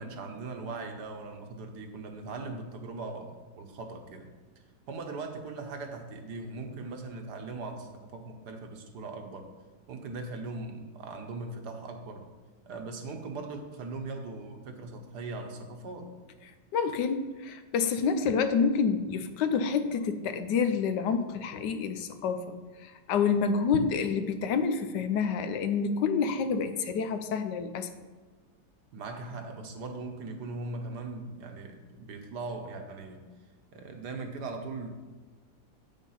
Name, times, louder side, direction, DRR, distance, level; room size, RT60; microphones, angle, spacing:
voice 1, 0.0-4.3 4.9-9.5 9.9-12.3 12.7-16.1 28.9-33.3 33.7-34.9, right 3 dB, 70° right, 4 dB, 1.5 m, -39 dB
voice 2, 16.7-22.6 22.8-27.9, left 5 dB, 85° left, 9 dB, 1.3 m, -28 dB
8.2 x 5.6 x 5.6 m, 1.3 s
omnidirectional pair, 1.8 m